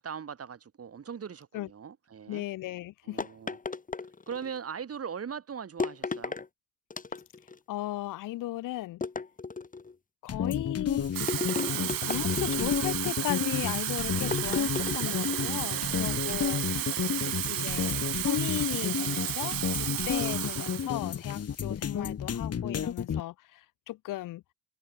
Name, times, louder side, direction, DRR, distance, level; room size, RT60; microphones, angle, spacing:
voice 1, 0.0-2.4 3.0-3.6 4.3-6.4 15.4-17.3, right 7 dB, 40° right, 3.6 m, -41 dB
voice 2, 2.3-3.3 7.7-9.0 10.2-11.3 11.7-16.6 17.5-24.4, left 16 dB, 60° left, 0.7 m, -36 dB
sound 1, 3.2-4.6 5.8-6.5 6.9-7.6 9.0-9.9 11.3-13.1 14.3-15.6, left 4 dB, 20° left, 1.9 m, -35 dB
sound 2, 10.3-23.2, left 8 dB, 45° left, 2.3 m, -32 dB
Water tap faucet / Fill (with liquid), 11.0-20.9 21.3-21.6, right 17 dB, 70° right, 1.4 m, -33 dB
supercardioid pair, 75°, 36 cm